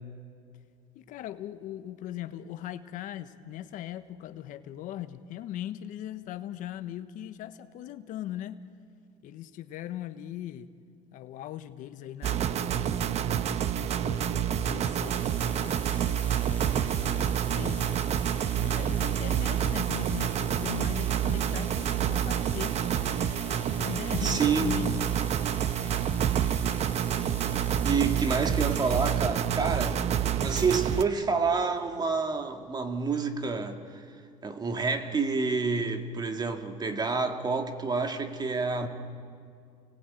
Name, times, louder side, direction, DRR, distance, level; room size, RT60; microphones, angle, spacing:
voice 1, 0.9-8.6 9.2-10.7 11.1-17.9 18.6-22.8 23.8-25.1 28.0-28.2, left 12 dB, 65° left, 1.2 m, -40 dB
sound 1, 12.2-31.0, right 9 dB, 50° right, 1.0 m, -28 dB
Water tap faucet, 14.3-14.4 14.9-29.4 30.3-30.5, left 3 dB, 10° left, 1.9 m, -47 dB
voice 2, 24.2-24.7 27.5-30.0 30.4-34.0 34.4-38.9, right 4 dB, 30° right, 2.5 m, -28 dB
29.0 x 19.5 x 9.0 m
supercardioid pair, 95°, 15 cm